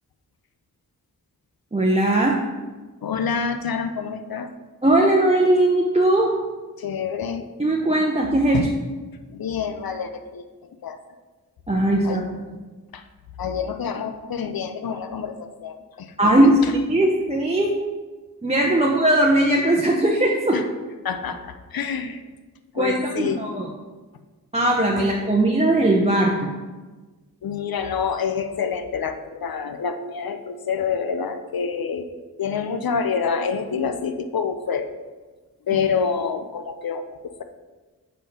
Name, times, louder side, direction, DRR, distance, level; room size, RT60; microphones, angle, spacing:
voice 1, 1.7-2.4 4.8-6.3 7.6-8.7 11.7-12.2 16.2-16.6 16.9-17.8 18.4-20.6 22.7-23.7 24.5-26.5, right 1 dB, 20° right, -2 dB, 0.7 m, -19 dB
voice 2, 3.0-4.5 6.8-7.5 8.5-8.7 9.3-10.4 10.8-11.0 12.0-12.2 12.9-13.0 13.4-16.3 16.6-16.7 18.8-18.9 20.5-20.6 21.0-22.2 22.7-23.4 27.4-32.1 32.4-34.9 35.7-37.4, left 6 dB, 90° left, 8 dB, 0.6 m, -27 dB
7.5 x 4.4 x 5.2 m, 1.3 s
wide cardioid pair, 90°, 35 cm